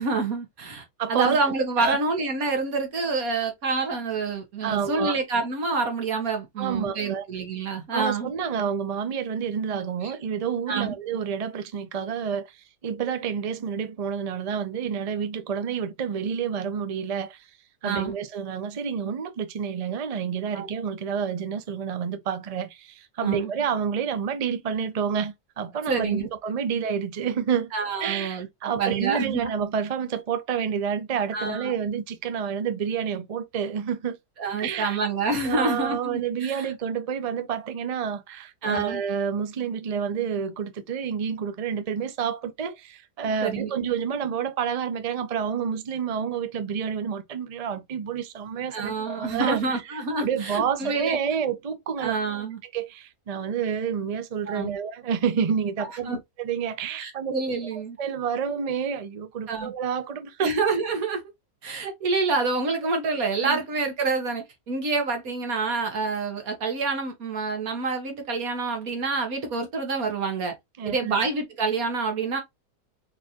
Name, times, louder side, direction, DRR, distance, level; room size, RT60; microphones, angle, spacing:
voice 1, 0.0-8.3 10.0-10.1 10.7-10.9 17.8-18.2 20.5-20.7 23.2-23.5 25.9-26.3 27.7-28.5 28.8-29.5 31.3-31.8 34.4-36.7 38.6-39.0 43.4-43.7 48.7-51.2 52.0-52.6 54.5-54.8 56.1-56.2 57.0-58.0 59.5-59.7 60.4-61.2 61.6-70.5 70.9-72.4, right 4 dB, 60° right, 1.8 m, -27 dB
voice 2, 1.0-1.4 1.8-2.0 4.6-5.2 6.6-7.3 7.9-17.5 17.8-27.7 28.0-34.2 34.6-35.0 35.4-49.8 50.2-52.1 52.7-57.3 57.7-60.5 63.4-63.6 70.8-71.2, right 7 dB, 80° right, 0.3 m, -29 dB
4.4 x 4.0 x 2.9 m
omnidirectional pair, 1.8 m